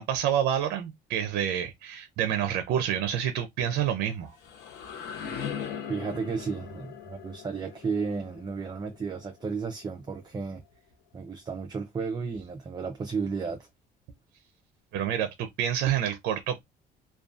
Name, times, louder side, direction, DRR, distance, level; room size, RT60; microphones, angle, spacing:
voice 1, 0.0-4.3 14.9-16.6, right 9 dB, 80° right, 0.5 m, -28 dB
sound 1, 4.1-9.8, left 7 dB, 85° left, 0.8 m, -40 dB
voice 2, 5.9-10.6 11.1-13.7, right 5 dB, 25° right, 0.5 m, -33 dB
2.5 x 2.3 x 2.4 m
cardioid pair, 110°, 17 cm